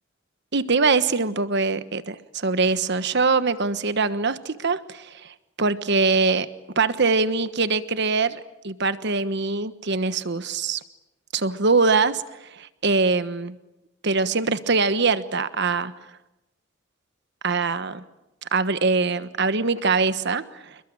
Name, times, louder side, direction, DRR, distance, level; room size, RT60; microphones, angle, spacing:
voice 1, 0.5-6.5 6.7-10.8 11.3-12.2 12.5-13.6 14.0-15.9 17.4-18.0 18.5-20.8, right 4 dB, 60° right, 13 dB, 1.3 m, -23 dB
28.0 x 22.0 x 8.8 m, 0.95 s
head